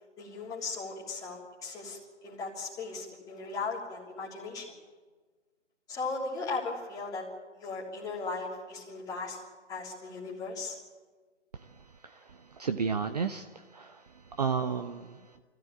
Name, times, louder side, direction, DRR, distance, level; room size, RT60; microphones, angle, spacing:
voice 1, 0.2-4.7 5.9-7.2 7.6-9.4 9.7-10.8, left 3 dB, 10° left, -3 dB, 3.2 m, -37 dB
voice 2, 12.6-14.0 14.4-15.2, right 6 dB, 35° right, 8 dB, 0.8 m, -32 dB
24.5 x 16.0 x 8.7 m, 1.4 s
figure-of-eight pair, 145°, 36 cm